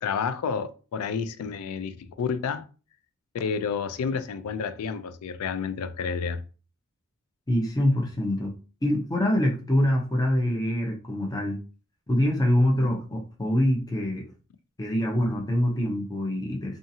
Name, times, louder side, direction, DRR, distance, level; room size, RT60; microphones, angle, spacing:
voice 1, 0.0-2.7 3.3-6.4, left 6 dB, 80° left, 0.3 m, -30 dB
voice 2, 7.5-8.5 8.8-11.6 12.1-14.3 14.8-16.8, left 1 dB, 15° left, 0.6 m, -25 dB
2.7 x 2.4 x 2.7 m
head